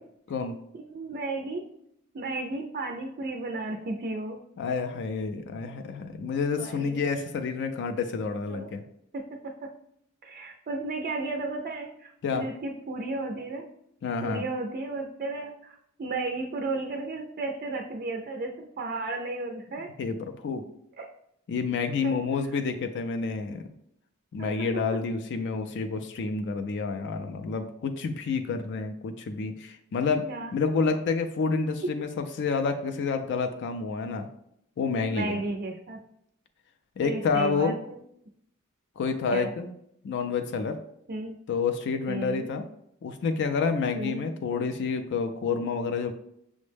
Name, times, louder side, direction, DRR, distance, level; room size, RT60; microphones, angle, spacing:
voice 1, 0.7-1.6 2.1-4.4 6.6-7.3 8.5-8.7 9.1-9.5 10.2-13.6 14.2-19.9 21.0-21.1 22.0-22.2 24.4-24.8 30.3-30.5 35.1-36.0 37.0-38.0 39.3-39.5 41.1-41.3 42.1-42.5 43.9-44.3, right 3 dB, 40° right, 3 dB, 0.4 m, -34 dB
voice 2, 4.6-8.8 12.2-12.4 14.0-14.4 20.0-20.6 21.5-23.7 24.3-30.2 30.5-34.3 34.8-35.4 37.0-37.7 39.0-39.7 40.0-40.8 41.5-42.6 43.0-46.1, left 5 dB, 55° left, 7 dB, 0.3 m, -29 dB
6.0 x 2.1 x 3.3 m, 0.74 s
head